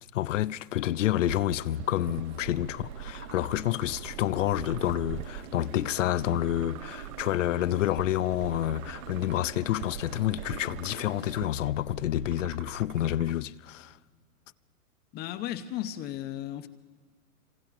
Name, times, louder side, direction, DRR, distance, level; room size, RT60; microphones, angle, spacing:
voice 1, 0.1-13.9, left 13 dB, 55° left, 0.7 m, -29 dB
sound 1, 0.9-11.5, right 9 dB, 40° right, 1.4 m, -47 dB
sound 2, 1.2-13.3, right 11 dB, 60° right, 0.7 m, -43 dB
voice 2, 15.1-16.7, left 12 dB, 20° left, 0.8 m, -35 dB
26.5 x 25.5 x 5.9 m
hypercardioid pair, 125°, 46 cm